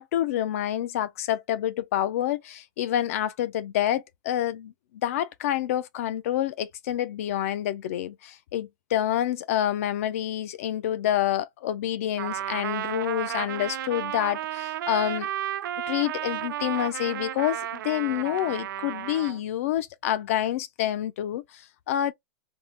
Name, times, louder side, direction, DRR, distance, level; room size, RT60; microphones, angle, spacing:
voice 1, 0.0-15.3 15.9-22.1, left 12 dB, 40° left, 0.3 m, -28 dB
Trumpet, 12.2-19.4, right 11 dB, 70° right, 0.4 m, -33 dB
3.5 x 2.0 x 2.8 m
supercardioid pair, 175°, 11 cm